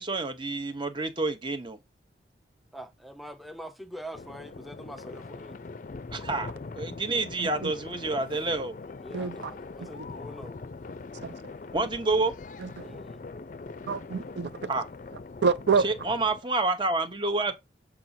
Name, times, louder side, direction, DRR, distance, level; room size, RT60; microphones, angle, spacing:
voice 1, 0.0-1.8 6.1-6.5 6.7-8.7 11.7-12.3 14.7-14.8 15.8-17.5, right 3 dB, 25° right, 0.9 m, -28 dB
voice 2, 2.7-5.6 9.0-10.6 12.8-13.2, equal, ahead, 0.6 m, -44 dB
sound 1, 4.1-16.4, left 3 dB, 45° left, 0.4 m, -42 dB
voice 3, 7.4-7.7 9.1-9.5 11.2-11.3 12.6-12.9 13.9-14.7 15.4-15.8, right 5 dB, 75° right, 0.5 m, -27 dB
7.5 x 4.8 x 2.7 m
head